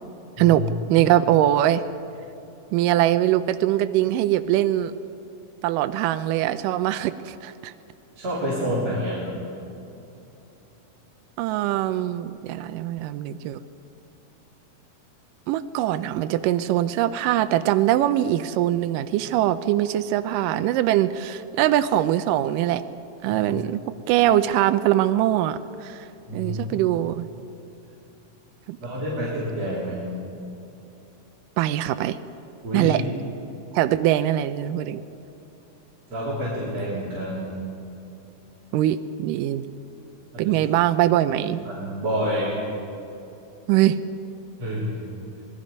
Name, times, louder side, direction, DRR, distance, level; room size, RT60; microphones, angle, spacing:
voice 1, 0.9-1.8 2.7-4.9 5.6-7.7 11.4-13.6 15.5-22.8 23.2-26.1 26.3-27.3 28.7-28.8 31.6-32.2 32.7-33.0 33.7-35.0 38.7-39.6 40.4-41.6 43.7-44.0, right 13 dB, 85° right, 10 dB, 2.2 m, -22 dB
voice 2, 8.2-9.3 23.3-23.4 26.3-26.8 28.8-30.0 32.6-32.9 36.1-37.6 40.3-40.6 41.5-42.6 44.6-45.0, equal, 50° right, -8 dB, 5.0 m, -28 dB
26.0 x 19.5 x 5.4 m, 2.9 s
omnidirectional pair, 3.8 m